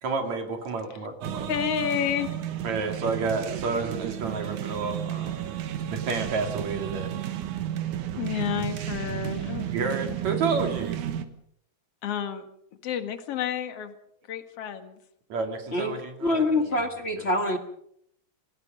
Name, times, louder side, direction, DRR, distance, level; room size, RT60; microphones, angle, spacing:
voice 1, 0.0-1.5 2.6-5.4 5.9-7.1 9.7-11.0 15.3-17.3, right 4 dB, 70° right, 5 dB, 3.9 m, -30 dB
sound 1, 1.2-11.2, right 10 dB, 90° right, 2.8 m, -32 dB
voice 2, 1.5-2.4 8.2-9.7 12.0-12.4 12.8-13.9 14.3-15.0 16.7-16.8, left 9 dB, 55° left, 8 dB, 2.6 m, -30 dB
voice 3, 16.2-17.6, left 2 dB, 25° left, 5 dB, 1.7 m, -25 dB
27.5 x 18.5 x 5.3 m, 0.71 s
omnidirectional pair, 3.4 m